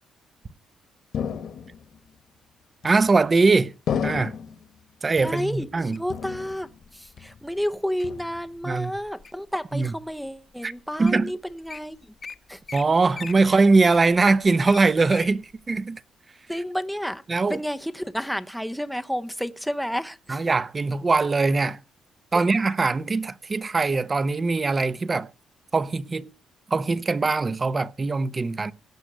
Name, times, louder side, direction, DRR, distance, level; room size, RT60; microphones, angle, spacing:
sound 1, 1.1-2.0 2.8-3.4 3.9-4.7 5.2-5.8 6.1-6.9 7.2-7.6 8.0-8.6, left 8 dB, 65° left, 1.6 m, -32 dB
voice 1, 2.8-3.7 4.0-4.3 5.0-6.0 8.6-8.9 9.7-9.9 10.6-10.7 11.0-11.3 12.7-16.0 17.3-17.6 20.3-21.8 22.3-25.3 25.7-26.3 26.7-28.7, right 3 dB, 30° right, 0.9 m, -22 dB
voice 2, 5.2-12.0 12.5-12.6 13.5-13.6 16.5-17.2 17.5-20.4 22.3-22.4, equal, ahead, 0.8 m, -31 dB
Wild animals, 5.4-6.1 6.8-7.1 7.6-8.0 8.6-9.5 10.1-10.2 10.8-10.9 11.0-11.2 11.5-11.8 12.2-12.3 12.7-12.8 13.1-15.3 15.8-15.9, left 5 dB, 35° left, 1.0 m, -39 dB
17.0 x 6.3 x 6.7 m
cardioid pair, 90°, 0 cm